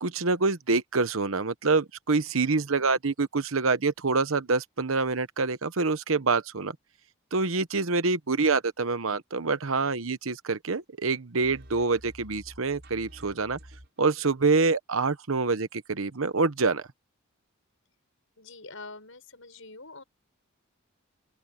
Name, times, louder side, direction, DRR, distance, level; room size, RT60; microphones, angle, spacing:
voice 1, 0.0-6.8 7.3-13.6 14.0-16.8, right 3 dB, 70° right, 1.0 m, -26 dB
sound 1, 11.4-14.1, equal, 50° right, 7.4 m, -49 dB
voice 2, 18.4-20.0, left 3 dB, 65° left, 6.3 m, -45 dB
open air
head